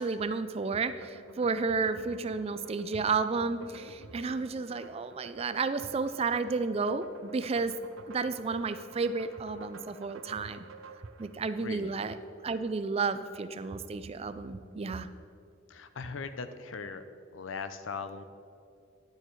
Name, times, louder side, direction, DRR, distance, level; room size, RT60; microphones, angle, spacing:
voice 1, 0.0-7.7 8.1-10.7 11.2-12.2 12.4-15.1, right 4 dB, 30° right, 12 dB, 0.4 m, -32 dB
sound 1, 0.6-12.3, right 4 dB, 85° right, 0.6 m, -51 dB
voice 2, 11.6-11.9 14.8-15.0 15.7-17.0 17.3-18.2, left 5 dB, 75° left, 10 dB, 0.5 m, -39 dB
10.5 x 6.7 x 4.5 m, 2.5 s
head